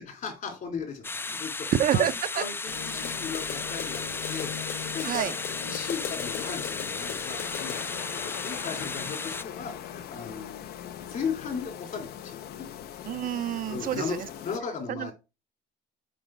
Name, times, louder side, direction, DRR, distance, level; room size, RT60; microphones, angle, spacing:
voice 1, 0.1-4.5 4.9-5.3 5.6-10.6 11.0-12.7 13.7-14.1 14.4-15.1, left 6 dB, 50° left, 2.8 m, -37 dB
sound 1, 1.0-9.4, left 3 dB, 15° left, 0.3 m, -35 dB
voice 2, 1.8-2.4 5.0-5.3 13.1-14.2 15.0-15.1, right 11 dB, 55° right, 0.5 m, -27 dB
sound 2, 2.7-14.6, left 10 dB, 70° left, 0.7 m, -39 dB
7.6 x 4.1 x 4.3 m
cardioid pair, 110°, 17 cm